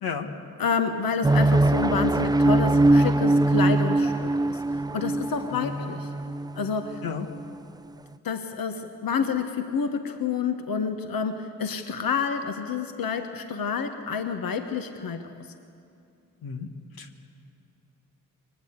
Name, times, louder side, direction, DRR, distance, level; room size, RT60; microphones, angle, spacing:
voice 1, 0.0-0.3 5.5-5.7 7.0-7.3 16.4-16.7 17.0-17.2, left 6 dB, 90° left, 5 dB, 1.4 m, -33 dB
voice 2, 0.6-4.6 4.9-6.1 6.6-7.0 8.2-15.2, left 5 dB, 75° left, 7 dB, 1.2 m, -29 dB
sound 1, 1.2-7.6, right 2 dB, 10° right, 0.5 m, -22 dB
22.5 x 19.5 x 8.2 m, 2.5 s
supercardioid pair, 40°, 35 cm